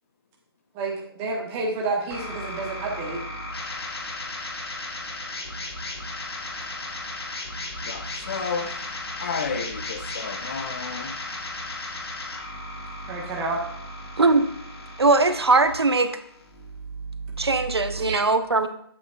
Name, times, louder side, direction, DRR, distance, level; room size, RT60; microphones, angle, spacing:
voice 1, 0.7-3.2 13.1-13.6 18.0-18.2, right 3 dB, 15° right, -2 dB, 1.2 m, -29 dB
sound 1, 2.1-18.1, left 1 dB, 75° left, 1.8 m, -35 dB
voice 2, 7.8-8.9 9.2-11.1, left 5 dB, 30° left, 7 dB, 0.6 m, -32 dB
voice 3, 15.0-16.1 17.4-18.7, right 3 dB, 80° right, 10 dB, 0.8 m, -20 dB
8.4 x 7.9 x 2.4 m, 0.70 s
figure-of-eight pair, 150°, 13 cm